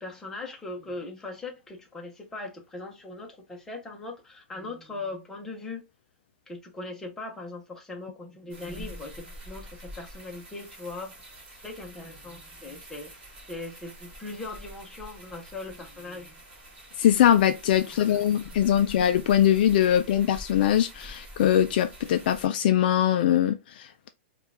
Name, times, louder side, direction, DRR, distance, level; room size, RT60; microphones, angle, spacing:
voice 1, 0.0-5.8 6.5-11.2 11.6-13.1 13.5-16.4 17.9-18.5, left 2 dB, 5° left, 0.8 m, -40 dB
sound 1, 8.5-22.4, equal, 15° right, 1.8 m, -46 dB
voice 2, 17.0-24.1, left 10 dB, 50° left, 0.4 m, -22 dB
4.4 x 2.4 x 3.4 m
hypercardioid pair, 160°, 6 cm